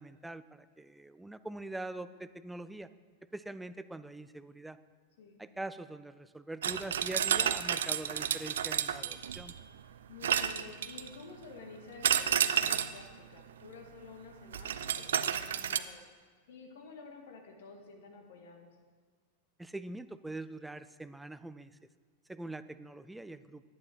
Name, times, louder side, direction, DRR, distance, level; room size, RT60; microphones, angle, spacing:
voice 1, 0.0-2.9 3.3-4.8 5.4-9.5 19.6-21.7 22.3-23.6, right 2 dB, 5° right, 13 dB, 0.4 m, -43 dB
sound 1, 6.6-9.6 10.2-11.2 12.0-13.0 14.5-15.8, right 9 dB, 65° right, 0.4 m, -31 dB
voice 2, 10.1-16.0 16.5-18.7, left 4 dB, 55° left, 3 dB, 1.8 m, -50 dB
10.5 x 9.6 x 4.4 m, 1.5 s
figure-of-eight pair, 90°, 0 cm